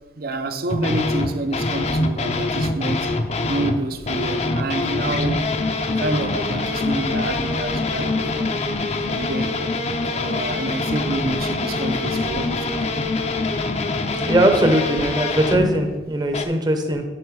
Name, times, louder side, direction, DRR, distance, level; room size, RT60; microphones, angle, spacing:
voice 1, 0.1-3.1 3.5-5.4 5.9-8.5 9.1-9.6 10.1-12.8, right 2 dB, 55° right, 0.6 m, -28 dB
sound 1, 0.7-3.8 4.1-15.8 16.3-16.4, left 2 dB, 35° left, 0.5 m, -24 dB
voice 2, 14.3-17.0, right 1 dB, 25° right, 0.8 m, -20 dB
10.0 x 4.5 x 4.7 m
head